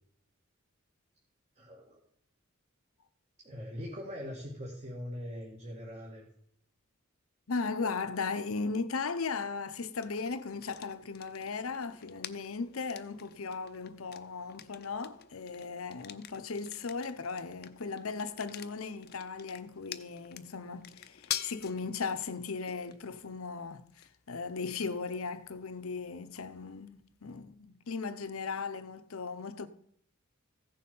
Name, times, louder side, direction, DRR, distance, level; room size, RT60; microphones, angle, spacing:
voice 1, 1.5-2.0 3.4-6.3, equal, 35° right, 2.1 m, -42 dB
voice 2, 7.5-29.7, left 4 dB, 75° left, 0.8 m, -37 dB
sound 1, 9.9-27.7, left 10 dB, 50° left, 0.7 m, -47 dB
15.0 x 6.8 x 5.5 m
head